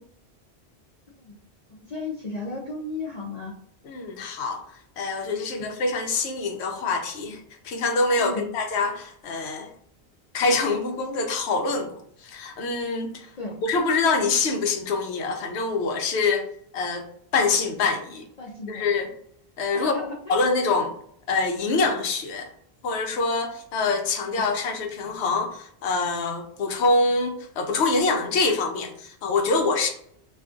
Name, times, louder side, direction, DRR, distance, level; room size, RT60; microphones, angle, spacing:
voice 1, 1.7-3.5 5.5-5.7 8.2-8.4 13.4-13.6 18.4-18.8 19.7-20.3 24.3-24.4, left 3 dB, 50° left, -4 dB, 0.6 m, -34 dB
voice 2, 3.9-4.6 5.0-9.7 10.3-13.3 13.6-16.5 16.7-17.1 17.3-18.3 18.7-19.1 19.6-19.9 20.3-20.9 21.3-22.5 22.8-29.9, left 3 dB, 85° left, 5 dB, 0.9 m, -25 dB
2.5 x 2.3 x 3.7 m, 0.67 s
omnidirectional pair, 1.1 m